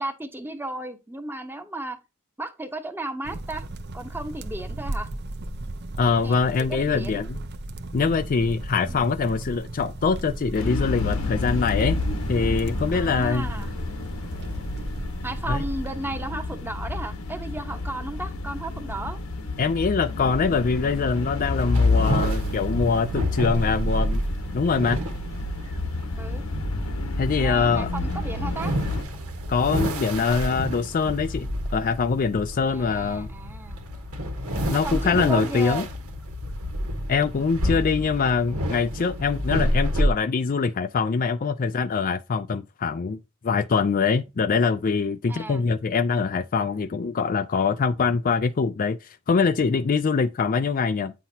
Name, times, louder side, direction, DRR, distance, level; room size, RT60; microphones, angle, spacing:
voice 1, 0.0-2.0 2.4-3.7 3.9-5.1 6.2-7.2 8.8-9.1 12.9-13.7 15.2-19.2 22.1-22.2 26.2-26.4 27.4-28.7 32.7-33.8 34.7-35.8 45.3-45.6, right 1 dB, 10° right, 0.9 m, -34 dB
sound 1, 3.2-15.9, right 1 dB, 50° right, 0.7 m, -35 dB
voice 2, 6.0-7.4 7.9-12.0 12.3-13.5 15.5-15.6 19.6-24.2 24.5-25.0 27.2-27.9 29.5-33.3 34.7-35.9 37.1-51.1, left 5 dB, 40° left, 0.4 m, -24 dB
sound 2, 10.5-29.0, left 2 dB, 80° left, 1.2 m, -29 dB
sound 3, 20.3-40.1, equal, 90° right, 1.5 m, -30 dB
9.2 x 5.7 x 2.8 m
head